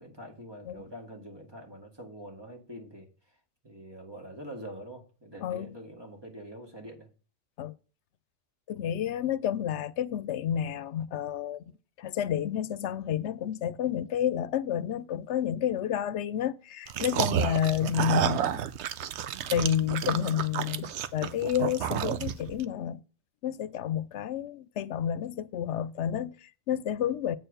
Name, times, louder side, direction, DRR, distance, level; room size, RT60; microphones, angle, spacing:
voice 1, 0.0-3.4 3.6-7.1, right 1 dB, 20° right, 2.1 m, -45 dB
voice 2, 5.4-5.7 7.6-7.7 8.7-11.6 12.0-18.6 19.5-23.0 23.4-27.4, left 10 dB, 85° left, 0.9 m, -30 dB
sound 1, 16.9-22.6, right 9 dB, 80° right, 0.9 m, -30 dB
8.2 x 4.5 x 6.6 m
omnidirectional pair, 1.1 m